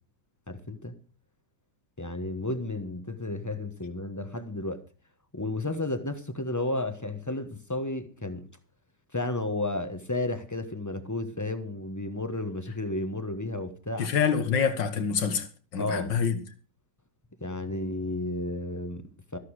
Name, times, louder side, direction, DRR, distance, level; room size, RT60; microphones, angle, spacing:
voice 1, 0.5-1.0 2.0-4.8 5.3-8.4 9.1-14.1 15.8-16.1 17.4-19.4, left 2 dB, 10° left, 1.0 m, -32 dB
voice 2, 14.0-15.5 15.7-16.4, left 6 dB, 80° left, 2.3 m, -26 dB
13.5 x 11.5 x 4.9 m
omnidirectional pair, 1.9 m